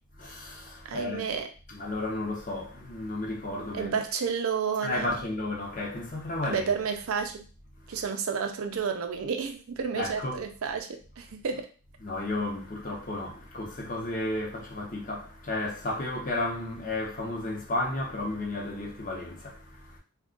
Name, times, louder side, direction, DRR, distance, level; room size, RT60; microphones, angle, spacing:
voice 1, 0.2-1.3 1.7-4.0 4.8-6.7 7.9-8.0 9.9-10.4 12.0-20.0, left 2 dB, 35° left, 0.7 m, -33 dB
voice 2, 0.9-1.5 3.7-5.1 6.5-7.4 7.9-11.7, right 6 dB, 65° right, 0.4 m, -31 dB
2.3 x 2.2 x 3.7 m
head